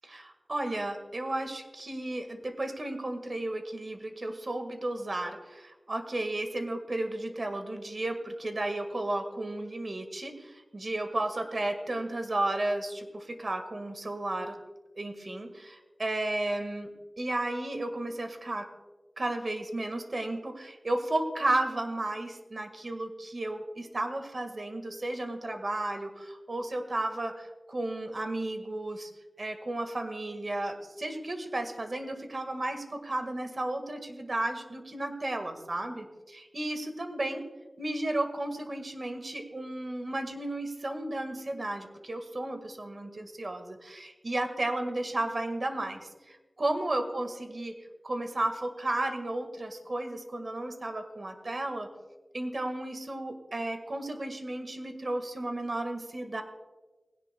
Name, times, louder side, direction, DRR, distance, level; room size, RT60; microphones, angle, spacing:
voice 1, 0.0-14.6 15.0-18.7 19.2-29.1 29.4-37.4 37.8-47.7 48.0-51.9 52.3-56.4, right 1 dB, 50° right, 6 dB, 1.7 m, -33 dB
19.5 x 17.0 x 2.3 m, 1.2 s
wide cardioid pair, 75°, 0 cm